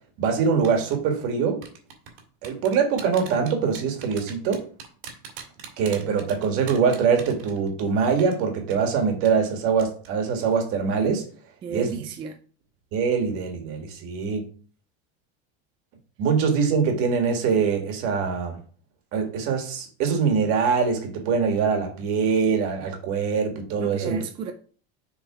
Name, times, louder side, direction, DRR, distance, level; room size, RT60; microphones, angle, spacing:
voice 1, 0.2-1.6 2.4-4.6 5.8-11.2 11.7-11.9 12.9-14.5 16.2-18.6 19.1-24.2, right 6 dB, 45° right, 1.7 m, -23 dB
sound 1, 0.6-1.0 1.6-7.9 8.2-8.3 8.7-8.8 9.2-9.5 9.8-10.1 10.4-10.6, right 7 dB, 75° right, 2.1 m, -40 dB
voice 2, 11.6-12.4 23.8-24.5, right 6 dB, 15° right, 0.4 m, -33 dB
7.0 x 3.8 x 4.8 m
cardioid pair, 170°, 30 cm